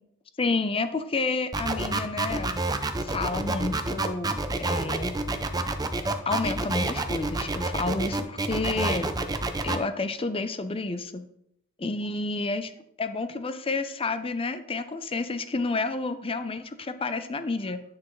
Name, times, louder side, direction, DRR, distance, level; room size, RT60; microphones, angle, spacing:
voice 1, 0.4-2.5 3.0-5.2 6.3-9.1 9.6-11.3 11.8-12.7 13.0-17.8, left 3 dB, 25° left, 10 dB, 0.5 m, -30 dB
sound 1, 1.5-9.8, right 2 dB, 20° right, 0.5 m, -28 dB
9.9 x 5.9 x 3.2 m, 0.76 s
head